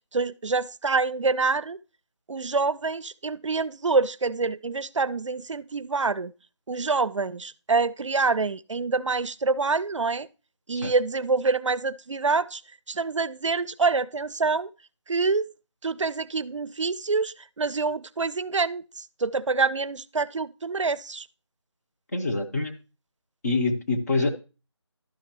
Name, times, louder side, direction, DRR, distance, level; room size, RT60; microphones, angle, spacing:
voice 1, 0.1-1.8 2.3-6.3 6.7-10.3 10.7-12.6 12.9-14.7 15.1-15.5 15.8-21.3, right 4 dB, 80° right, 0.4 m, -26 dB
voice 2, 22.1-22.7 23.4-24.3, left 3 dB, 35° left, 0.9 m, -25 dB
11.5 x 5.7 x 2.9 m
figure-of-eight pair, 160°, 15 cm